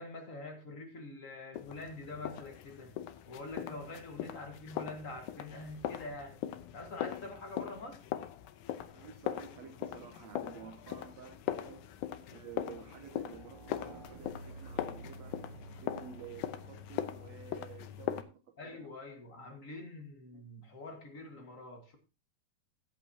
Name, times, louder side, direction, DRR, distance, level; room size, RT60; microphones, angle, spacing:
voice 1, 0.0-2.9 3.3-6.4 6.7-8.0 18.6-22.0, left 2 dB, 35° left, 1.5 m, -45 dB
sound 1, 1.6-18.2, left 11 dB, 85° left, 2.3 m, -41 dB
voice 2, 8.9-11.9 12.3-15.4 15.8-18.9 19.5-19.6 20.3-20.4, right 7 dB, 70° right, 2.1 m, -51 dB
sound 2, 9.8-10.0 10.6-17.4, right 2 dB, 50° right, 2.4 m, -53 dB
15.0 x 8.6 x 2.8 m
omnidirectional pair, 3.5 m